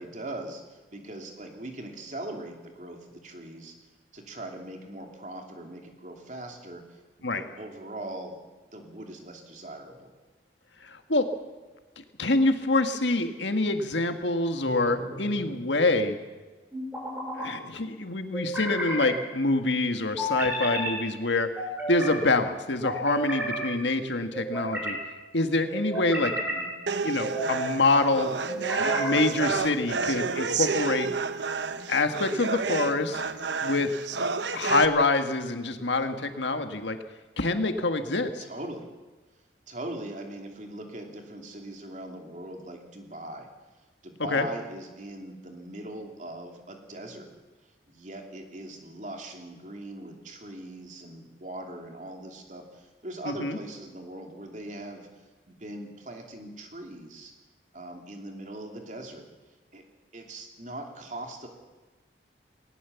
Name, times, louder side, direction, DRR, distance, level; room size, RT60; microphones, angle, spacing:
voice 1, 0.0-3.7 4.1-7.0 7.3-8.4 8.7-10.1 26.3-26.7 38.4-38.9 39.7-43.5 44.0-47.3 47.9-57.3 57.7-59.3 59.7-59.8 60.1-61.5, right 1 dB, 45° right, 3 dB, 3.0 m, -40 dB
voice 2, 10.8-11.3 12.2-16.2 17.3-25.0 25.3-26.3 27.0-28.3 28.8-31.1 31.9-33.2 33.6-33.9 34.5-37.0 37.4-38.4 44.3-44.5 53.2-53.6, left 2 dB, 90° left, 7 dB, 1.8 m, -26 dB
sound 1, 14.7-15.3 16.7-17.5 18.3-19.1 20.2-20.9 21.6-22.2 22.8-23.7 24.3-25.0 25.7-26.6 27.2-27.7 28.5-29.3, right 1 dB, 10° right, 5.6 m, -32 dB
sound 2, 26.9-34.9, right 5 dB, 85° right, 1.0 m, -30 dB
19.5 x 19.0 x 7.1 m, 1.2 s
head